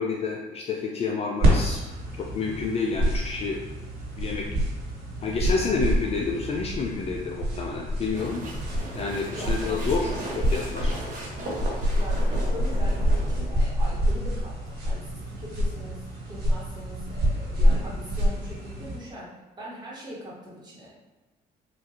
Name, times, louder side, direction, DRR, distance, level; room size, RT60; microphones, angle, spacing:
voice 1, 0.0-1.8 2.1-3.6 4.2-4.4 5.2-8.5 8.9-10.1 10.5-10.9, left 4 dB, 35° left, 0 dB, 0.3 m, -29 dB
sound 1, 1.4-19.0, equal, 70° right, 1.5 m, -27 dB
sound 2, 8.1-13.5, right 1 dB, 50° right, 1.0 m, -37 dB
voice 2, 9.3-10.6 11.9-21.1, equal, 25° right, -6 dB, 1.3 m, -41 dB
3.7 x 2.5 x 2.8 m, 1.2 s
cardioid pair, 110°, 17 cm